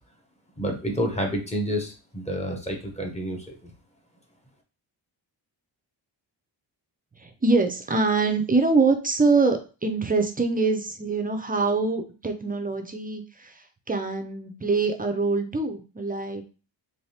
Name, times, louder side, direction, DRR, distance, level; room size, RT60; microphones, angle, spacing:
voice 1, 0.6-3.5, equal, 15° left, 1 dB, 0.7 m, -29 dB
voice 2, 7.2-16.4, right 3 dB, 20° right, 5 dB, 0.3 m, -24 dB
3.3 x 2.7 x 2.7 m, 0.34 s
wide cardioid pair, 140°, 46 cm